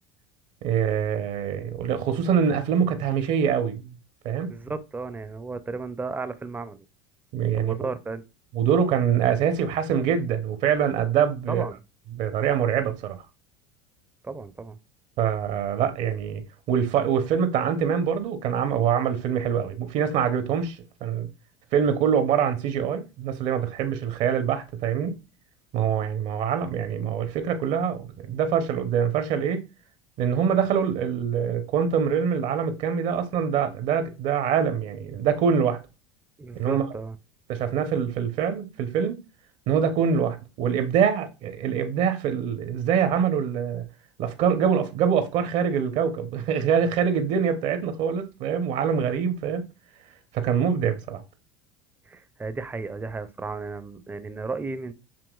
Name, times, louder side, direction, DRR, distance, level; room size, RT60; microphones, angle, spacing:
voice 1, 0.6-3.9 4.2-4.6 7.3-7.7 8.5-11.6 12.1-13.2 15.2-16.4 16.7-21.3 21.7-25.2 25.7-29.7 30.2-35.8 36.6-36.8 37.5-39.2 39.7-43.8 44.2-49.7 50.3-51.2, right 7 dB, 55° right, 0.8 m, -24 dB
voice 2, 4.5-6.8 7.6-8.2 11.5-11.8 14.2-14.8 36.4-37.2 52.1-54.9, right 4 dB, 15° right, 0.6 m, -34 dB
7.0 x 2.9 x 2.3 m
hypercardioid pair, 90°, 15 cm